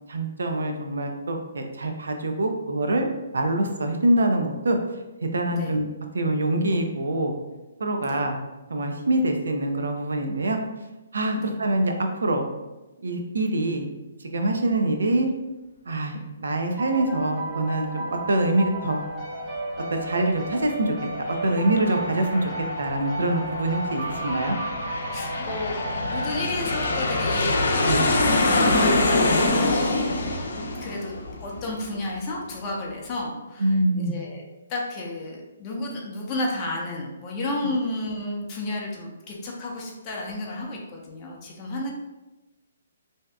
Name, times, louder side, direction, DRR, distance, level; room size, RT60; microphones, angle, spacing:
voice 1, 0.1-3.1 3.3-4.8 5.2-5.9 6.1-7.3 7.8-8.4 8.7-10.6 11.1-12.5 13.0-13.9 14.3-15.3 15.9-19.1 19.9-21.0 21.4-22.5 22.8-24.6 27.8-28.1 33.6-34.2, right 1 dB, 90° right, 4 dB, 0.5 m, -24 dB
sound 1, 16.8-27.2, right 1 dB, 20° right, 0.7 m, -34 dB
Aircraft, 21.1-32.3, left 2 dB, 70° left, 0.6 m, -25 dB
voice 2, 25.1-27.5 27.8-30.3 30.8-31.1 31.4-41.9, left 2 dB, 25° left, -2 dB, 0.5 m, -32 dB
2.6 x 2.3 x 3.4 m, 1.0 s
hypercardioid pair, 155°, 0 cm